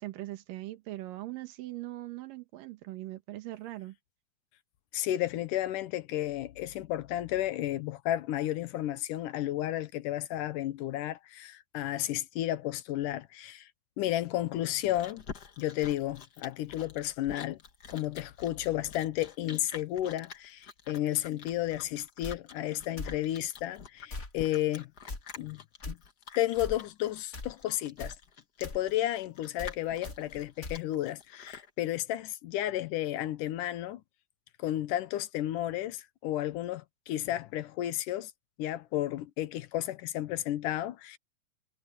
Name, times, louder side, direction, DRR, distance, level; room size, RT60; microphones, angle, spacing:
voice 1, 0.0-4.0, right 16 dB, 80° right, 3.0 m, -41 dB
voice 2, 4.9-13.7 14.0-15.2 15.6-17.6 17.9-24.9 25.4-25.6 25.9-26.0 26.4-28.2 28.6-34.0 34.6-38.3 38.6-41.2, left 13 dB, 80° left, 2.4 m, -32 dB
Chewing mastication, 14.5-31.7, left 6 dB, 45° left, 1.3 m, -48 dB
sound 1, 22.2-22.4 23.0-23.2 24.1-24.3 25.1-25.2 25.8-25.9 26.6-26.8 27.3-27.5 28.0-28.2 28.6-28.8 29.6-29.8 30.0-30.2 30.6-30.8, left 2 dB, 25° left, 2.1 m, -39 dB
omnidirectional pair, 3.9 m